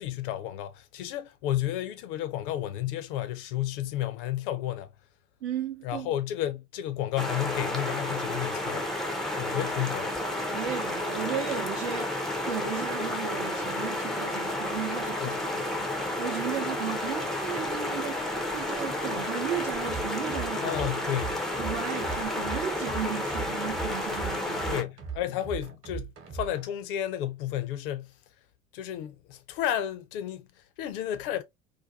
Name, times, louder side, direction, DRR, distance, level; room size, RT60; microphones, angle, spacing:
voice 1, 0.0-4.9 5.8-8.9 9.4-10.2 15.2-15.4 20.6-21.4 24.7-28.1 28.7-31.4, left 12 dB, 50° left, 0.6 m, -32 dB
voice 2, 5.4-6.1 10.5-20.8 21.6-24.8, right 9 dB, 65° right, 0.6 m, -35 dB
sound 1, 7.2-24.8, left 1 dB, ahead, 0.4 m, -31 dB
sound 2, 19.8-26.6, right 7 dB, 40° right, 0.9 m, -39 dB
2.5 x 2.2 x 2.6 m
figure-of-eight pair, 75°, 35 cm